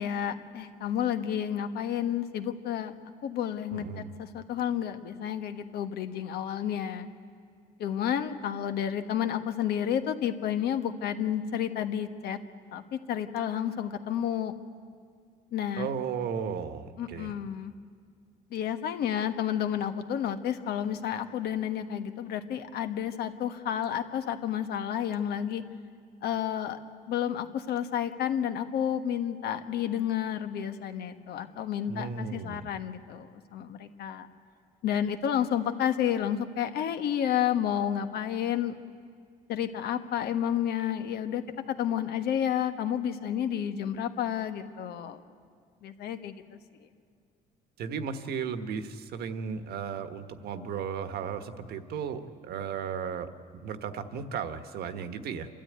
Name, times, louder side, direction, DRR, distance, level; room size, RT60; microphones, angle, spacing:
voice 1, 0.0-2.9 3.2-7.1 7.8-12.4 12.7-14.5 15.5-15.9 17.0-17.7 18.5-25.6 26.2-26.8 27.1-34.3 34.8-38.7 39.5-41.4 41.7-45.2 45.8-46.3, left 9 dB, 70° left, 8 dB, 1.4 m, -30 dB
voice 2, 3.7-4.1 15.8-17.3 31.9-32.7 47.8-55.5, right 6 dB, 70° right, 9 dB, 1.4 m, -35 dB
27.5 x 13.0 x 9.4 m, 2.1 s
cardioid pair, 110°, 17 cm